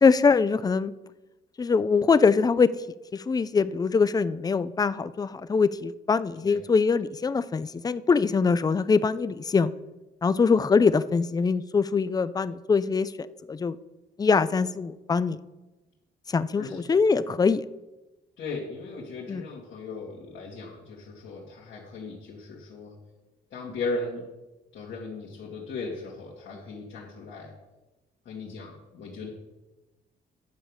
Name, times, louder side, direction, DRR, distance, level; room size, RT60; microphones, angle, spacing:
voice 1, 0.0-0.9 1.6-2.7 3.1-9.7 10.2-13.1 13.5-13.7 14.2-15.4 16.3-17.6 19.3-19.4, left 5 dB, 20° left, 15 dB, 0.4 m, -23 dB
voice 2, 18.4-22.9 23.5-24.3 24.7-27.5 28.3-29.3, left 3 dB, 70° left, -4 dB, 2.1 m, -37 dB
10.0 x 4.8 x 7.2 m, 1.1 s
cardioid pair, 90°, 20 cm